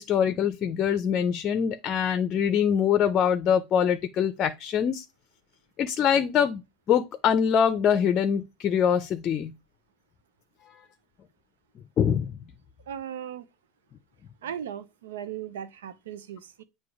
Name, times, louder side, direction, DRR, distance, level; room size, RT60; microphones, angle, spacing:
voice 1, 0.0-5.0 5.8-6.6 6.9-9.5 12.0-12.4, left 8 dB, 40° left, 0.6 m, -24 dB
voice 2, 12.9-13.5 14.4-16.6, right 9 dB, 80° right, 0.6 m, -37 dB
7.7 x 2.7 x 4.7 m
hypercardioid pair, 80°, 0 cm